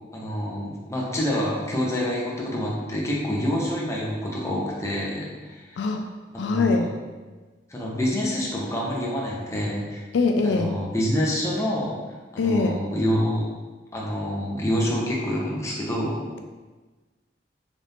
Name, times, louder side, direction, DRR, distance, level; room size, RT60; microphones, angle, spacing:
voice 1, 0.1-5.8 6.3-6.9 7.7-10.0 10.4-12.0 12.3-13.5 13.9-16.2, equal, 15° left, -4 dB, 0.7 m, -27 dB
voice 2, 6.4-6.9 10.1-10.7 12.4-12.8, left 3 dB, 80° left, 4 dB, 0.3 m, -22 dB
4.1 x 2.5 x 3.4 m, 1.3 s
head